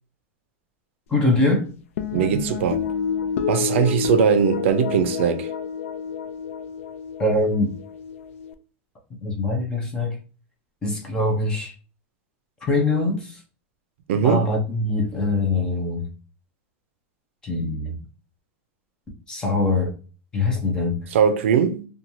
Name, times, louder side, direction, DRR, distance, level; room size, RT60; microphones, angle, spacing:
voice 1, 1.1-1.7 7.2-7.7 9.2-10.2 10.8-11.7 12.7-13.4 14.2-16.1 17.4-18.0 19.3-19.9 20.3-21.0, left 2 dB, 10° left, 0.5 m, -23 dB
sound 1, 2.0-8.5, left 7 dB, 90° left, 0.4 m, -29 dB
voice 2, 2.1-2.8 3.5-5.5 14.1-14.5 21.1-21.9, right 8 dB, 65° right, 0.4 m, -20 dB
2.9 x 2.2 x 2.6 m
supercardioid pair, 175°, 7 cm